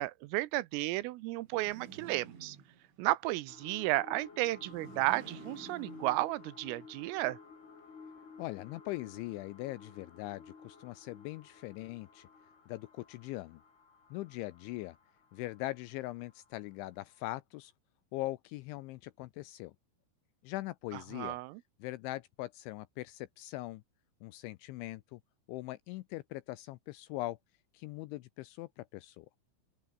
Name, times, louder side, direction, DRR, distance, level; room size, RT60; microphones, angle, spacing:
voice 1, 0.0-2.6 3.0-7.4 21.1-21.6, right 19 dB, 85° right, 3.4 m, -33 dB
sound 1, 1.4-3.1 4.5-6.7, right 6 dB, 65° right, 7.9 m, -52 dB
sound 2, 3.5-16.6 17.1-17.2, left 5 dB, 50° left, 8.1 m, -54 dB
voice 2, 8.4-12.3 12.7-13.6 14.1-15.0 15.3-17.7 18.1-19.7 20.4-21.4 21.8-23.8 24.2-25.2 25.5-27.4 27.7-29.3, left 18 dB, 80° left, 2.7 m, -41 dB
open air
omnidirectional pair, 6.0 m